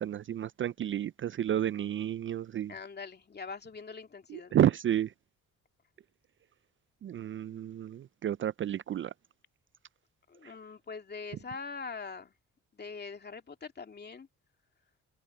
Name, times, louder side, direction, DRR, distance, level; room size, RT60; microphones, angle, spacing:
voice 1, 0.0-2.7 4.3-5.1 7.0-9.1 10.4-10.5, right 11 dB, 45° right, 0.4 m, -31 dB
voice 2, 2.7-4.6 10.3-12.3 12.7-14.3, left 5 dB, 35° left, 2.5 m, -43 dB
cardioid pair, 90°, 30 cm